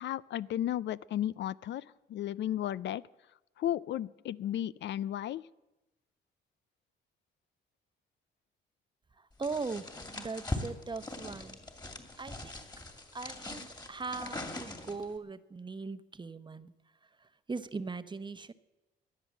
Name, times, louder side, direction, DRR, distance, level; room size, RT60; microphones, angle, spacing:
voice 1, 0.0-3.0 3.6-5.5, left 12 dB, 65° left, 19 dB, 0.4 m, -34 dB
voice 2, 9.2-11.6 12.2-12.7 13.1-16.7 17.0-18.5, right 4 dB, 25° right, 12 dB, 0.9 m, -40 dB
sound 1, 9.4-15.1, left 2 dB, 20° left, 2.6 m, -41 dB
18.0 x 11.0 x 7.3 m, 0.99 s
cardioid pair, 90°, 20 cm